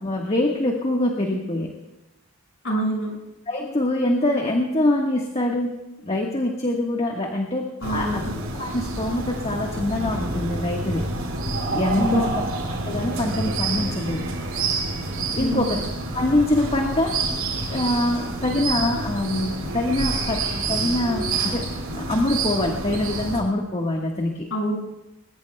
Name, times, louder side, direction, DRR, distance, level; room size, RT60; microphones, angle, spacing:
voice 1, 0.0-1.8 3.5-5.8 6.0-8.2 8.6-11.1 11.7-12.4 12.8-14.3 15.3-15.8 16.1-17.2 17.7-21.7 21.9-24.5, left 1 dB, 30° left, 1 dB, 1.5 m, -24 dB
voice 2, 2.6-3.2 7.8-8.3 12.0-12.4 15.4-15.8 24.5-24.8, right 1 dB, 65° left, -1 dB, 6.2 m, -26 dB
sound 1, 7.8-23.4, right 2 dB, 70° right, 4.8 m, -28 dB
21.5 x 21.0 x 2.3 m, 1.0 s
head